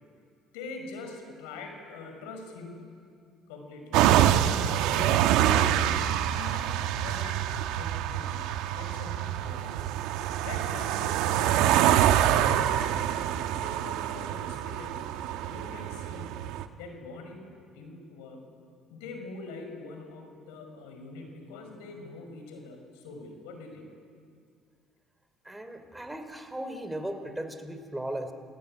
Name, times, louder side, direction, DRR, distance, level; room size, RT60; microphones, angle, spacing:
voice 1, 0.5-2.9 3.5-4.0 4.8-8.4 8.7-9.9 10.4-13.3 13.6-15.1 15.5-16.4 16.8-18.4 18.9-23.9, left 3 dB, 90° left, 4 dB, 5.6 m, -44 dB
sound 1, 3.9-16.6, right 11 dB, 80° right, 1.2 m, -26 dB
voice 2, 25.4-28.3, right 1 dB, 10° right, 8 dB, 3.2 m, -37 dB
28.5 x 17.5 x 9.9 m, 2.2 s
supercardioid pair, 85°, 0 cm